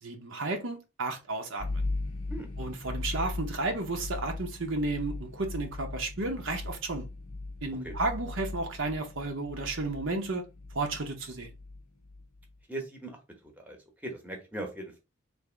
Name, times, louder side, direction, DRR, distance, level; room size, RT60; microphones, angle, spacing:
voice 1, 0.0-1.8 2.6-7.1 7.6-10.5 10.7-11.5, right 2 dB, 60° right, 0.9 m, -33 dB
sound 1, 1.6-12.5, left 2 dB, 85° left, 0.6 m, -38 dB
voice 2, 12.7-13.2 13.6-13.8 14.0-15.0, right 1 dB, 5° right, 0.9 m, -38 dB
3.4 x 2.6 x 3.8 m
head